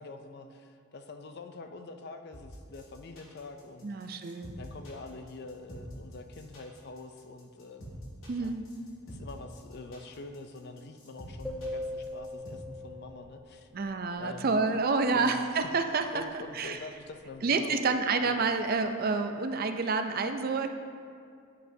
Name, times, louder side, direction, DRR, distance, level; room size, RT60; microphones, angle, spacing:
voice 1, 0.0-4.1 4.6-8.6 9.1-13.7 14.2-14.6 15.1-15.4 16.1-17.8 18.2-18.4, left 3 dB, 50° left, 7 dB, 0.4 m, -45 dB
sound 1, 2.3-12.5, equal, 65° left, 1.9 m, -47 dB
voice 2, 3.8-4.6 8.3-8.7 13.7-16.2 16.5-16.8 17.4-20.7, right 4 dB, 40° right, 7 dB, 0.4 m, -28 dB
sound 2, 11.4-13.7, left 1 dB, ahead, 0.8 m, -39 dB
9.1 x 8.3 x 2.7 m, 2.3 s
head